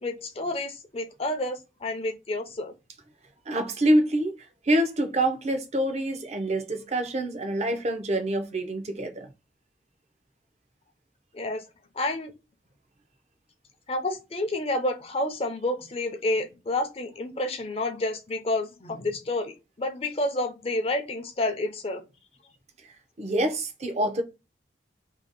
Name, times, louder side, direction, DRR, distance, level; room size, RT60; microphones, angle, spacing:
voice 1, 0.0-2.7 11.3-11.6 12.0-12.3 13.9-22.0, left 2 dB, 30° left, 0.6 m, -29 dB
voice 2, 3.5-9.3 22.8-24.2, right 1 dB, 35° right, 0.6 m, -26 dB
2.8 x 2.8 x 3.9 m
head